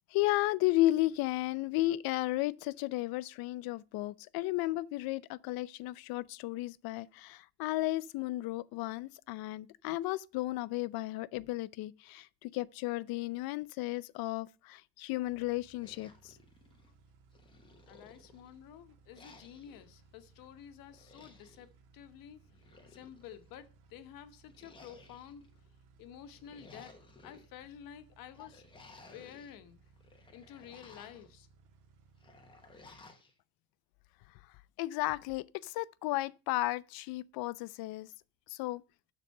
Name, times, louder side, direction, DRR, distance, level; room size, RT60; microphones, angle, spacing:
voice 1, 0.1-16.4 28.4-28.5 34.8-38.1 38.5-38.8, left 17 dB, 85° left, 0.6 m, -34 dB
sound 1, 15.2-33.0, right 4 dB, 65° right, 1.6 m, -63 dB
sound 2, 15.8-16.9 17.3-18.6 19.1-19.9 20.9-21.7 22.4-23.4 24.5-25.5 26.2-27.5 28.3-29.6 30.0-31.3 32.2-33.3, left 3 dB, 15° left, 1.2 m, -57 dB
voice 2, 17.9-22.4 22.9-25.6 26.0-27.0 27.2-28.6 29.1-29.8 30.3-31.5, left 9 dB, 70° left, 1.2 m, -51 dB
12.5 x 4.2 x 6.5 m
cardioid pair, 180°, 35 cm